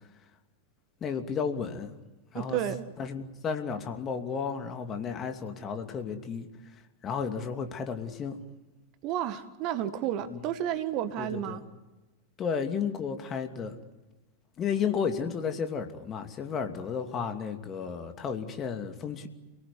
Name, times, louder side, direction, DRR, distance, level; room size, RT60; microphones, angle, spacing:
voice 1, 1.0-2.0 2.3-2.6 3.0-6.5 7.0-8.4 10.3-10.4 11.2-11.6 12.4-13.7 14.6-19.3, left 6 dB, 25° left, 6 dB, 2.7 m, -33 dB
voice 2, 2.3-2.9 9.0-11.6, right 11 dB, 40° right, 11 dB, 1.7 m, -31 dB
29.0 x 18.5 x 9.7 m, 1.1 s
figure-of-eight pair, 90°, 0 cm